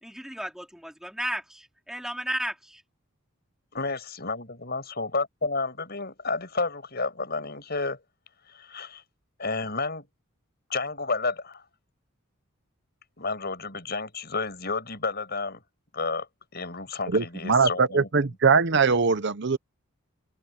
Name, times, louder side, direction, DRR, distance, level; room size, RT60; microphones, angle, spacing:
voice 1, 0.0-2.8, equal, ahead, 3.0 m, -34 dB
voice 2, 3.7-8.0 8.5-9.0 9.4-10.1 10.7-11.6 13.2-15.6 15.9-16.3 16.5-18.1, left 3 dB, 45° left, 6.2 m, -31 dB
voice 3, 17.1-19.6, right 5 dB, 55° right, 0.7 m, -22 dB
open air
head